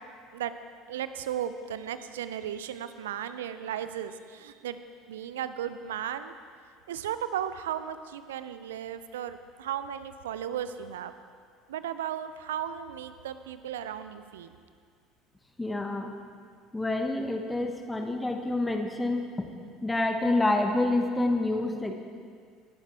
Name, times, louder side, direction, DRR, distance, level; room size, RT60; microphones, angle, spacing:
voice 1, 0.9-4.8 5.1-6.4 6.9-11.1 11.7-14.6, right 10 dB, 70° right, 12 dB, 0.6 m, -35 dB
voice 2, 15.6-16.1 16.7-19.5 19.8-22.0, left 2 dB, 10° left, 4 dB, 1.2 m, -27 dB
20.5 x 11.5 x 3.5 m, 2.1 s
figure-of-eight pair, 65°, 0 cm